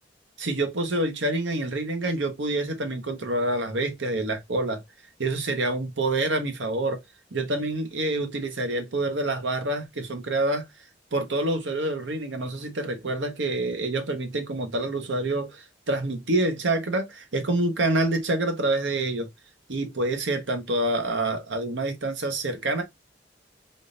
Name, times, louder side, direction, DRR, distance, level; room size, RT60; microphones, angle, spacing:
voice 1, 0.4-4.8 5.2-7.0 7.3-10.6 11.1-19.3 19.7-22.8, right 2 dB, 80° right, 0.9 m, -27 dB
3.6 x 2.6 x 2.4 m
head